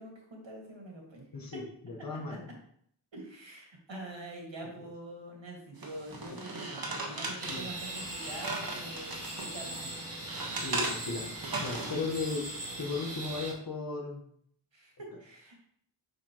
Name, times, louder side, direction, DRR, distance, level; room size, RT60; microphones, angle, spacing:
voice 1, 0.0-1.3 2.1-2.2 3.1-10.0 11.9-12.0 14.7-15.5, right 1 dB, 80° right, 0 dB, 1.9 m, -45 dB
voice 2, 1.3-2.5 6.2-6.4 7.5-7.7 10.6-11.3 11.6-12.4 12.7-14.2, left 3 dB, 50° left, 0 dB, 1.2 m, -36 dB
sound 1, 5.8-9.5 9.9-12.0, right 2 dB, 55° right, 1.2 m, -37 dB
sound 2, 7.4-13.5, right 2 dB, 35° right, 1.6 m, -40 dB
6.2 x 5.6 x 2.9 m, 0.66 s
wide cardioid pair, 60°, 44 cm